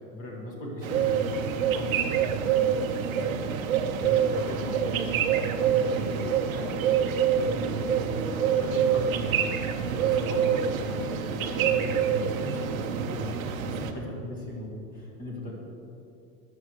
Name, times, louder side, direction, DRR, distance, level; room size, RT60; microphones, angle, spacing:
voice 1, 0.1-2.3 4.0-5.4 7.4-7.9 8.2-13.5 13.8-15.5, equal, 15° left, -2 dB, 1.8 m, -38 dB
sound 1, 0.8-13.9, right 7 dB, 55° right, 1.1 m, -26 dB
voice 2, 4.6-7.8 8.3-8.6, right 3 dB, 30° right, -2 dB, 1.1 m, -43 dB
23.5 x 8.0 x 3.2 m, 2.7 s
supercardioid pair, 170°, 49 cm